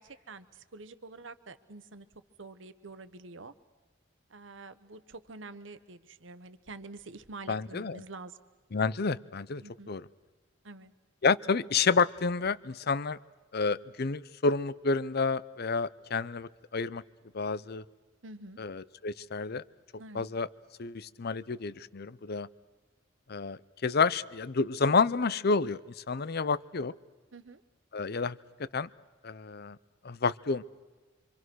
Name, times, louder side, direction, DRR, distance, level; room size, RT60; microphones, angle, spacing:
voice 1, 0.0-2.1 2.4-3.5 4.3-8.4 9.6-9.9 10.6-10.9 18.2-18.6 20.0-20.3 27.3-27.6, right 3 dB, 75° right, 11 dB, 1.2 m, -47 dB
voice 2, 7.5-8.0 8.7-10.1 11.2-13.2 13.5-17.0 17.3-17.8 18.6-19.6 20.1-20.5 20.8-22.5 23.3-26.9 27.9-28.9 29.2-29.8 30.0-30.6, left 4 dB, 55° left, 18 dB, 0.7 m, -30 dB
26.5 x 25.5 x 6.3 m, 1.3 s
head